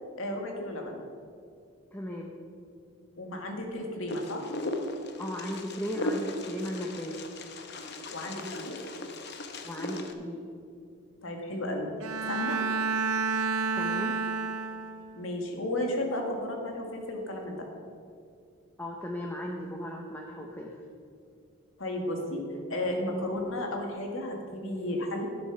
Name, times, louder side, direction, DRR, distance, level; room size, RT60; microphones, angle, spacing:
voice 1, 0.2-1.0 3.2-4.5 8.1-8.9 11.2-11.9 12.3-12.6 15.2-17.7 21.8-22.4 22.7-25.3, left 1 dB, 70° left, 2 dB, 1.9 m, -33 dB
voice 2, 1.9-2.3 5.2-7.2 9.6-10.4 13.7-14.2 18.8-20.8, left 1 dB, 10° left, 0 dB, 0.7 m, -36 dB
Wind, 4.1-10.1, left 1 dB, 50° left, 0.9 m, -37 dB
Bowed string instrument, 12.0-15.2, right 4 dB, 85° right, 0.6 m, -30 dB
11.5 x 7.8 x 5.9 m, 2.4 s
head